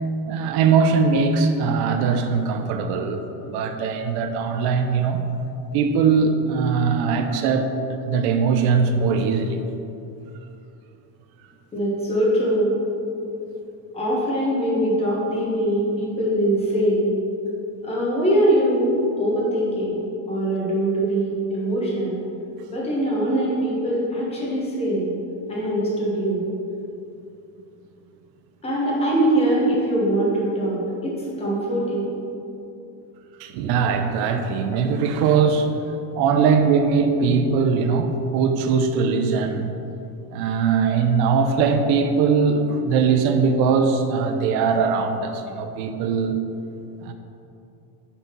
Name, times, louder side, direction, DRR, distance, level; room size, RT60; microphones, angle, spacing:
voice 1, 0.3-5.2 5.7-7.7 8.0-9.6 33.4-35.7 36.1-39.7 40.3-46.4 47.0-47.1, right 5 dB, 65° right, 6 dB, 0.7 m, -21 dB
voice 2, 11.7-12.7 13.9-17.1 17.8-20.0 20.3-22.1 22.7-25.1 25.5-26.4 28.6-32.1, right 1 dB, 15° left, -5 dB, 1.3 m, -22 dB
5.6 x 4.0 x 5.9 m, 2.7 s
cardioid pair, 165°, 40 cm